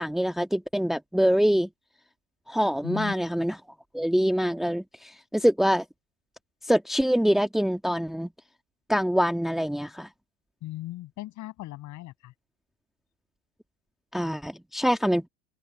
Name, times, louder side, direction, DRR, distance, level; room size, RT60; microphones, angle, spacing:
voice 1, 0.0-1.7 2.5-3.6 3.9-5.8 6.6-8.3 8.9-10.1 14.1-15.3, equal, ahead, 1.5 m, -25 dB
voice 2, 2.8-3.1 10.6-12.3, left 16 dB, 45° left, 6.7 m, -37 dB
open air
hypercardioid pair, 95°, 41 cm